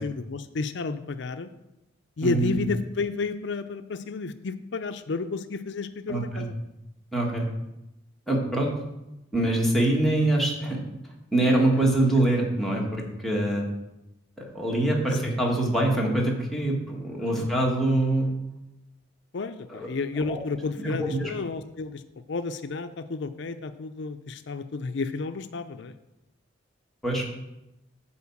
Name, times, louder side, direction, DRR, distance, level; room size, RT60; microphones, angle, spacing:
voice 1, 0.0-1.5 2.2-6.6 17.3-17.5 19.3-22.0 22.3-25.9, left 4 dB, 65° left, 10 dB, 0.5 m, -31 dB
voice 2, 2.2-2.6 6.1-6.4 7.1-7.5 8.3-8.7 9.3-10.8 11.3-13.7 14.4-18.3 19.7-19.9 20.3-20.4 21.0-21.3 27.0-27.2, right 1 dB, ahead, -3 dB, 1.6 m, -24 dB
8.6 x 4.4 x 7.2 m, 0.93 s
head